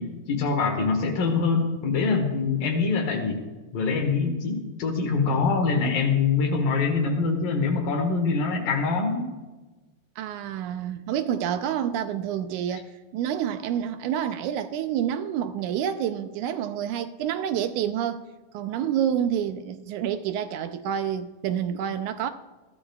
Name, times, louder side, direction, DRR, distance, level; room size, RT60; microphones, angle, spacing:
voice 1, 0.0-3.4 3.7-9.3, left 4 dB, 85° left, 3.3 m, -24 dB
voice 2, 10.2-18.2 18.5-22.3, right 9 dB, 80° right, 1.9 m, -28 dB
21.0 x 14.0 x 2.3 m
omnidirectional pair, 3.9 m